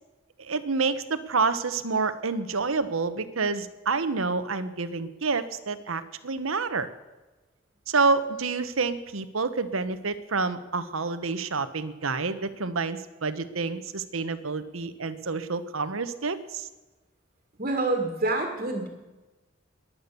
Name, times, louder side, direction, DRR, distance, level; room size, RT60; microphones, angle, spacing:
voice 1, 0.4-6.9 7.9-16.7, right 4 dB, 85° right, 12 dB, 1.1 m, -28 dB
voice 2, 17.6-18.9, right 2 dB, 40° right, 3 dB, 2.0 m, -27 dB
21.5 x 8.8 x 6.9 m, 1.1 s
head